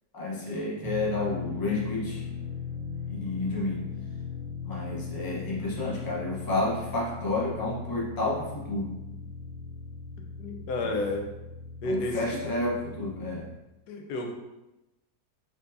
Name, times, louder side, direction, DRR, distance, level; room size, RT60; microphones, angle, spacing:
voice 1, 0.1-2.3 3.1-3.8 4.6-8.9 11.8-13.5, left 2 dB, 20° left, -5 dB, 0.6 m, -30 dB
sound 1, 0.8-13.6, left 5 dB, 65° right, 1.2 m, -39 dB
voice 2, 10.4-11.2 11.8-12.4 13.9-14.3, left 2 dB, 85° left, 2 dB, 1.3 m, -31 dB
4.5 x 3.8 x 2.6 m, 0.98 s
omnidirectional pair, 1.7 m